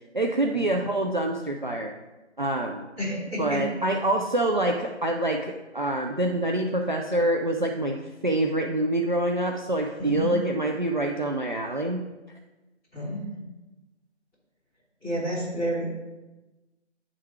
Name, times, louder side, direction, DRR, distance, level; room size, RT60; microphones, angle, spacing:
voice 1, 0.1-1.9 2.4-2.8 3.4-8.0 8.2-12.0, right 1 dB, 45° right, 1 dB, 0.4 m, -26 dB
voice 2, 3.0-3.6 10.0-10.3 12.9-13.4 15.0-15.8, equal, 5° left, -16 dB, 2.4 m, -30 dB
9.6 x 3.7 x 4.5 m, 1.1 s
figure-of-eight pair, 175°, 35 cm